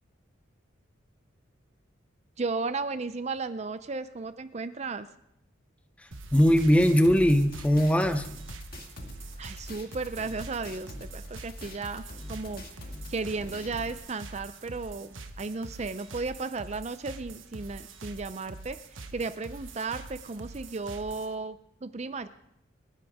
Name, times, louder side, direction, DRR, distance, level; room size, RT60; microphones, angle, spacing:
voice 1, 2.4-5.1 9.4-12.0 12.3-22.3, right 3 dB, 35° right, 11 dB, 0.5 m, -35 dB
sound 1, 6.1-21.3, right 2 dB, 80° right, 1.3 m, -45 dB
sound 2, 6.3-14.0, left 1 dB, 50° left, 1.9 m, -44 dB
voice 2, 6.3-8.3, equal, 5° left, 9 dB, 0.7 m, -21 dB
28.5 x 10.0 x 3.6 m, 0.77 s
head